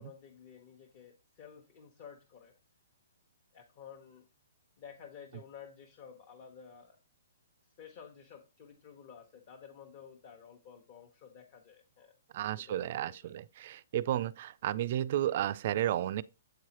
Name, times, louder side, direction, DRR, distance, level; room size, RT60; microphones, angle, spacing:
voice 1, 0.0-2.5 3.5-4.3 4.8-7.0 7.8-12.1 12.7-13.3, left 7 dB, 35° left, 1.0 m, -52 dB
voice 2, 12.3-16.2, right 12 dB, 40° right, 0.3 m, -32 dB
8.0 x 4.7 x 2.9 m
hypercardioid pair, 165°, 0 cm